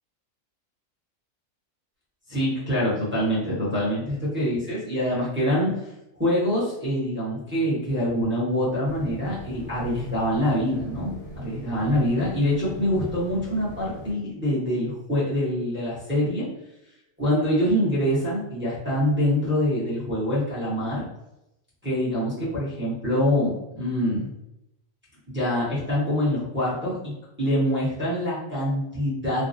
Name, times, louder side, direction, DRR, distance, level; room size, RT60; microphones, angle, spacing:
voice 1, 2.3-5.7 6.2-11.1 11.4-16.5 17.2-21.0 21.8-24.3 25.3-29.5, equal, 10° right, -9 dB, 1.0 m, -25 dB
sound 1, 8.8-14.1, right 1 dB, 55° left, 1.2 m, -41 dB
3.3 x 2.3 x 2.6 m, 0.87 s
omnidirectional pair, 1.4 m